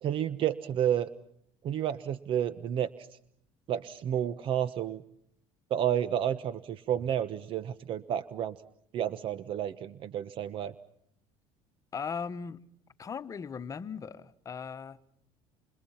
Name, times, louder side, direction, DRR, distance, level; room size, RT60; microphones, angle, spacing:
voice 1, 0.0-1.1 1.6-3.1 3.7-5.0 5.7-8.5 8.9-10.7, right 10 dB, 50° right, 1.1 m, -31 dB
voice 2, 11.9-12.6 13.0-15.0, left 6 dB, 30° left, 1.2 m, -38 dB
29.5 x 27.5 x 5.7 m
cardioid pair, 130°, 12 cm